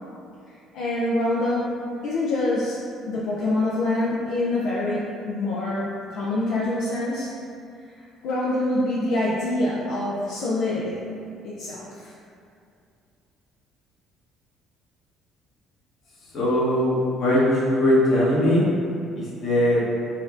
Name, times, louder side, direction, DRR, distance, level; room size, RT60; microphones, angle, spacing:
voice 1, 0.5-1.6 2.0-2.8 3.1-7.3 8.2-11.0 11.4-12.1, left 2 dB, 75° left, -7 dB, 0.4 m, -25 dB
voice 2, 16.3-18.6 19.1-19.9, left 1 dB, 55° left, -7 dB, 1.1 m, -20 dB
4.1 x 2.3 x 2.5 m, 2.5 s
hypercardioid pair, 55°, 0 cm